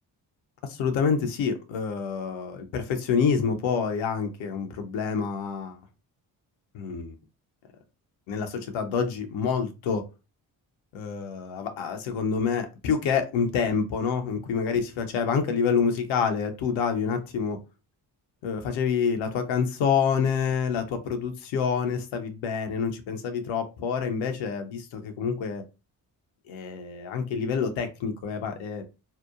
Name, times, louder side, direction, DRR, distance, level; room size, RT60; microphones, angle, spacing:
voice 1, 0.6-5.8 6.7-7.1 8.3-10.0 10.9-17.6 18.4-25.6 26.5-28.8, left 6 dB, 70° left, 7 dB, 0.6 m, -27 dB
2.7 x 2.1 x 2.3 m, 0.28 s
hypercardioid pair, 45°, 49 cm